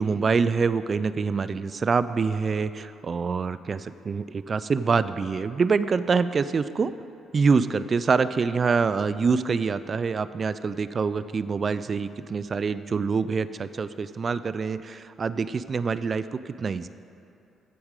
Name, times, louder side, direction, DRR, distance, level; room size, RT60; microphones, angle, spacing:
voice 1, 0.0-6.9 7.3-16.9, right 5 dB, 40° right, 14 dB, 0.3 m, -25 dB
14.5 x 5.0 x 4.8 m, 2.8 s
cardioid pair, 90°, 0 cm